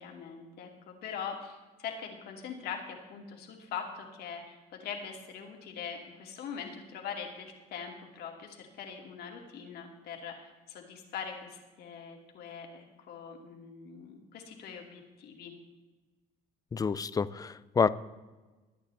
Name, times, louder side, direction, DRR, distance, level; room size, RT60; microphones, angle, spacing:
voice 1, 0.0-15.5, left 7 dB, 70° left, 2 dB, 2.6 m, -42 dB
voice 2, 16.7-17.9, left 5 dB, 20° left, 17 dB, 0.4 m, -28 dB
22.0 x 9.3 x 3.5 m, 1.2 s
cardioid pair, 110°, 17 cm